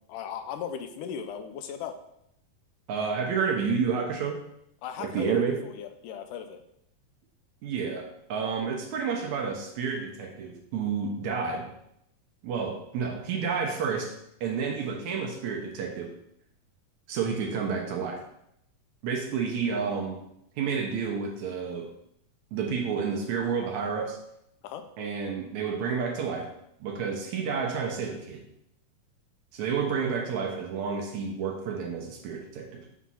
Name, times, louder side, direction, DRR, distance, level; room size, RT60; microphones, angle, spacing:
voice 1, 0.1-2.0 4.8-5.3 5.6-6.6 24.6-24.8, left 8 dB, 80° left, 7 dB, 2.1 m, -37 dB
voice 2, 2.9-4.4 5.0-5.5 7.6-11.7 12.4-14.1 14.4-16.1 17.1-18.2 19.0-20.2 20.6-21.9 22.5-24.2 25.0-26.5 26.8-28.4 29.5-32.9, right 6 dB, 70° right, 2 dB, 2.0 m, -30 dB
7.4 x 3.6 x 5.5 m, 0.76 s
omnidirectional pair, 3.8 m